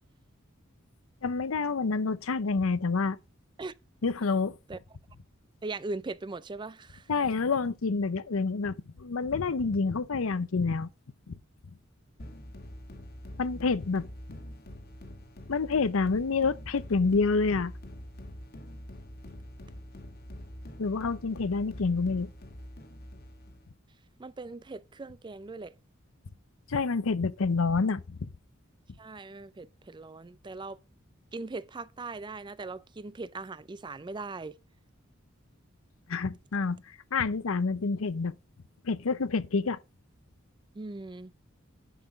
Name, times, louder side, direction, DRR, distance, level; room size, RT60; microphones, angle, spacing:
voice 1, 1.2-3.2 4.0-4.6 7.1-10.9 11.3-11.4 13.4-14.1 15.5-17.7 20.8-22.3 26.7-28.3 36.1-38.4 38.8-39.8, left 4 dB, 80° left, 0.6 m, -28 dB
voice 2, 5.6-7.1 24.2-25.7 29.0-30.8 31.3-34.5 40.7-41.3, right 3 dB, 20° right, 0.4 m, -39 dB
sound 1, 12.2-23.7, equal, 50° left, 1.7 m, -45 dB
10.5 x 6.0 x 3.6 m
head